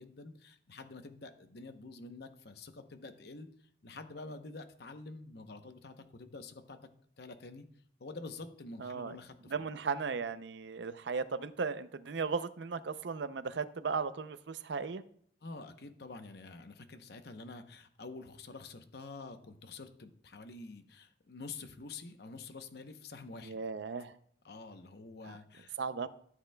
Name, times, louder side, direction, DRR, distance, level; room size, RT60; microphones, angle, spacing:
voice 1, 0.0-3.5 3.8-6.8 7.2-7.7 8.0-9.7 15.4-23.6 24.4-25.7, left 3 dB, 60° left, 8 dB, 0.8 m, -48 dB
voice 2, 8.8-9.2 9.5-15.0 23.4-24.1 25.3-25.4 25.8-26.1, right 5 dB, 70° right, 13 dB, 0.5 m, -36 dB
13.5 x 7.9 x 2.2 m, 0.63 s
head